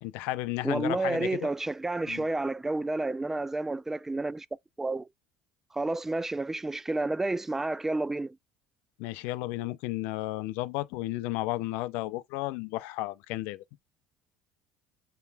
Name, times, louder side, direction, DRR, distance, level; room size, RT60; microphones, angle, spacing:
voice 1, 0.0-1.5 2.1-2.2 9.0-13.6, left 17 dB, 75° left, 0.4 m, -33 dB
voice 2, 0.6-4.5 4.8-5.1 5.7-8.4, right 2 dB, 10° right, 0.3 m, -30 dB
6.7 x 3.0 x 2.2 m
supercardioid pair, 95°, 3 cm